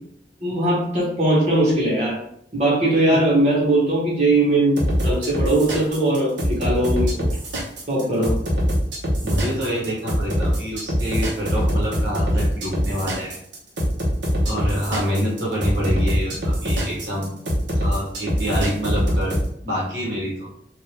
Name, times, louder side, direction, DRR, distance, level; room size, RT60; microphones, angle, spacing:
voice 1, 0.4-2.2 2.5-7.3 7.9-8.4, right 1 dB, 40° right, -6 dB, 1.3 m, -20 dB
sound 1, 4.8-19.5, equal, 90° right, 0.9 m, -23 dB
voice 2, 9.2-13.3 14.4-17.4 17.7-19.4 19.6-20.5, equal, 70° right, -5 dB, 1.1 m, -26 dB
3.3 x 2.5 x 2.8 m, 0.70 s
head